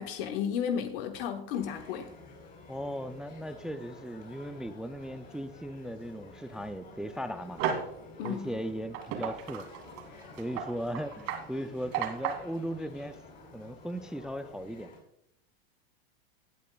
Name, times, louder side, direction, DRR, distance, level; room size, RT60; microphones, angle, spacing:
voice 1, 0.0-2.1 8.2-8.5, left 8 dB, 60° left, 1.2 m, -33 dB
sound 1, 1.5-15.0, left 2 dB, 30° left, 4.5 m, -51 dB
voice 2, 2.7-7.6 8.2-9.7 10.4-13.2 13.5-14.9, equal, ahead, 0.3 m, -37 dB
sound 2, 7.6-7.9 8.2-8.4 8.9-12.5, right 8 dB, 55° right, 2.3 m, -33 dB
17.0 x 8.3 x 2.3 m
hypercardioid pair, 120°, 31 cm